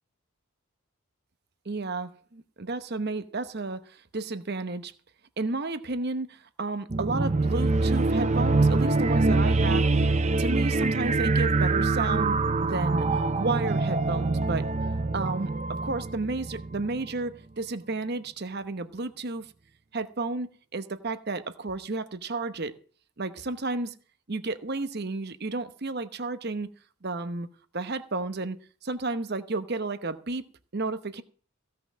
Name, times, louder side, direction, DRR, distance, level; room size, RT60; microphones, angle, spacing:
voice 1, 1.6-4.9 5.4-14.7 15.1-19.5 19.9-22.7 23.2-23.9 24.3-26.7 27.0-27.5 27.7-28.6 28.8-30.4 30.7-31.2, right 3 dB, 45° right, 0.9 m, -32 dB
sound 1, 6.9-17.1, right 3 dB, 30° right, 0.6 m, -25 dB
16.0 x 5.8 x 7.3 m
head